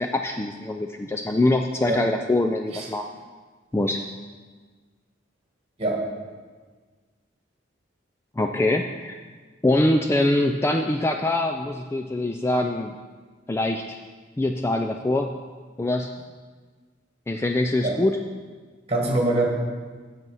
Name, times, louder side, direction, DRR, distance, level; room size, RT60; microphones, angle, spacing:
voice 1, 0.0-3.1 3.7-4.0 8.4-9.2 9.6-13.0 13.5-14.0 14.4-15.3 15.8-16.1 17.3-18.2, left 1 dB, 15° left, 4 dB, 0.3 m, -23 dB
voice 2, 18.9-19.5, right 2 dB, 30° right, -1 dB, 1.9 m, -23 dB
8.1 x 7.4 x 5.5 m, 1.5 s
head